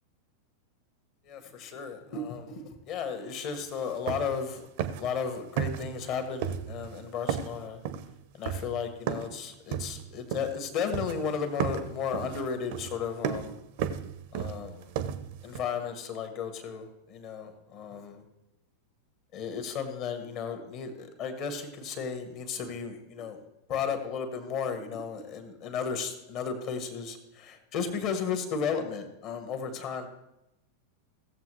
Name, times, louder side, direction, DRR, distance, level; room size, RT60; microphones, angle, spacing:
voice 1, 1.2-4.6 5.0-7.8 8.4-13.6 14.3-14.9 15.4-18.2 19.3-23.4 23.7-30.1, left 6 dB, 40° left, 7 dB, 1.5 m, -34 dB
sound 1, 3.5-3.6 3.9-4.5 4.8-5.2 5.6-6.1 6.4-7.0 7.3-9.4 9.7-10.7 10.9-11.3 11.6-15.6, right 8 dB, 50° right, 0.6 m, -34 dB
17.0 x 7.4 x 3.2 m, 0.92 s
figure-of-eight pair, 90°, 0 cm